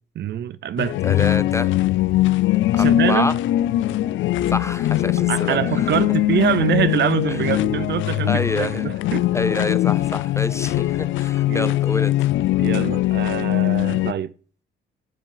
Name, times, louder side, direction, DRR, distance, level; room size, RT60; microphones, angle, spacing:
voice 1, 0.2-1.0 2.8-3.3 5.3-9.3 11.5-11.8 12.6-14.3, right 10 dB, 60° right, 0.7 m, -24 dB
sound 1, 0.8-14.1, left 15 dB, 75° left, 0.4 m, -21 dB
voice 2, 1.0-1.7 2.7-3.3 4.5-5.9 7.3-7.5 8.3-8.9 9.3-12.1, left 2 dB, 15° left, 0.6 m, -27 dB
11.5 x 7.2 x 3.9 m
cardioid pair, 90°, 20 cm